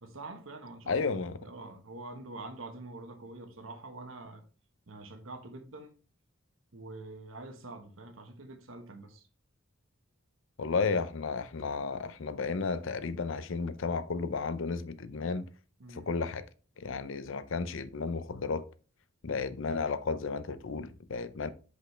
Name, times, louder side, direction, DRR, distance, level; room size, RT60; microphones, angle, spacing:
voice 1, 0.0-1.1 1.4-4.4 4.9-5.9 6.7-9.3 15.8-16.1, right 2 dB, 75° right, 1.3 m, -45 dB
voice 2, 0.9-1.4 10.6-15.5 15.9-16.4 16.8-18.7 19.2-21.5, left 4 dB, 70° left, 0.6 m, -33 dB
6.2 x 5.2 x 3.2 m
head